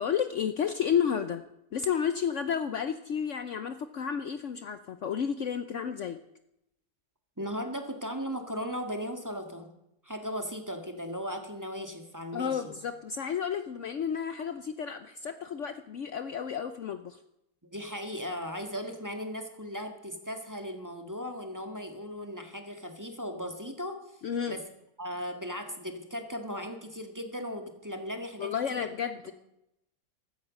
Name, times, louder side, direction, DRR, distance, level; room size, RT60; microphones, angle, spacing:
voice 1, 0.0-1.4 1.7-6.2 12.3-17.2 24.2-24.6 28.4-29.3, left 7 dB, 60° left, 10 dB, 1.0 m, -31 dB
voice 2, 7.4-9.7 10.0-12.7 17.7-24.0 24.5-24.6 25.0-28.9 29.2-29.3, equal, 10° right, 5 dB, 1.9 m, -37 dB
15.5 x 13.5 x 6.4 m, 0.82 s
omnidirectional pair, 1.6 m